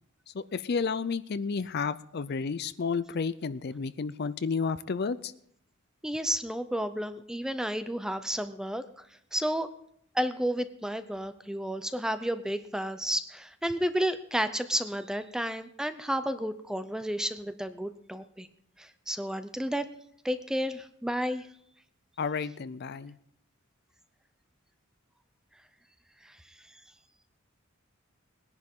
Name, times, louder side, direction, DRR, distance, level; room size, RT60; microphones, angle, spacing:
voice 1, 0.3-5.3 22.2-23.1, left 5 dB, 50° left, 15 dB, 0.4 m, -31 dB
voice 2, 6.0-9.0 9.3-9.7 10.1-18.5 18.8-19.9 20.2-21.5 26.2-26.4, equal, 5° right, 11 dB, 0.6 m, -31 dB
20.5 x 10.5 x 3.7 m, 0.70 s
head